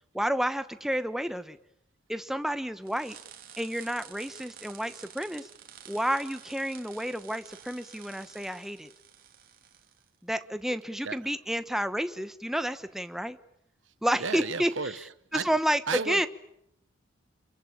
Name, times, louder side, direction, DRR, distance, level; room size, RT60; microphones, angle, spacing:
voice 1, 0.1-1.6 2.1-3.2 3.6-5.5 5.9-8.9 10.2-13.4 14.0-14.7 15.3-16.3, equal, ahead, 1.0 m, -30 dB
sound 1, 2.9-10.1, right 9 dB, 45° right, 3.0 m, -50 dB
voice 2, 14.2-15.0 15.3-15.5 15.9-16.3, right 5 dB, 70° right, 1.2 m, -33 dB
28.5 x 22.5 x 8.7 m
head